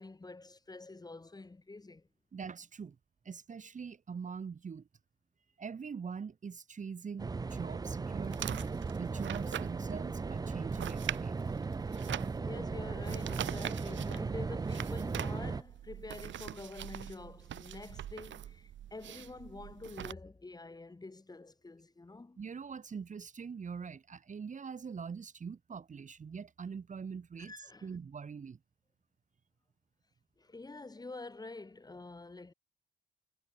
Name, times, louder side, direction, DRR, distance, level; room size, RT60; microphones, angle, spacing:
voice 1, 0.0-2.1 12.4-22.4 27.4-28.0 30.4-32.5, left 3 dB, 20° left, 3.4 m, -47 dB
voice 2, 2.3-3.0 3.3-4.8 5.6-8.6 9.0-11.4 22.4-27.5 27.8-28.6, right 6 dB, 40° right, 2.3 m, -43 dB
sound 1, 7.2-15.6, right 4 dB, 20° right, 0.5 m, -37 dB
sound 2, 8.2-20.1, right 11 dB, 70° right, 3.5 m, -43 dB
cardioid pair, 90°, 20 cm